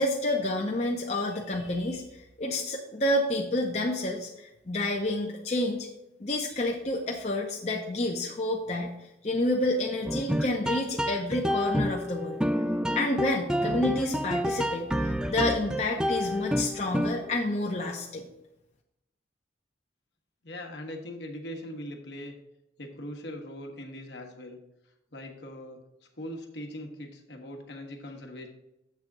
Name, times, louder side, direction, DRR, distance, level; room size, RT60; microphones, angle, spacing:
voice 1, 0.0-5.9 6.2-8.9 9.2-12.4 13.0-18.2, left 1 dB, 35° left, 0 dB, 0.6 m, -29 dB
sound 1, 10.1-17.4, equal, 5° right, 0.3 m, -29 dB
voice 2, 20.4-22.4 22.8-24.6 25.1-25.8 26.2-28.5, left 1 dB, 65° left, 3 dB, 1.2 m, -40 dB
7.6 x 3.6 x 6.5 m, 0.87 s
head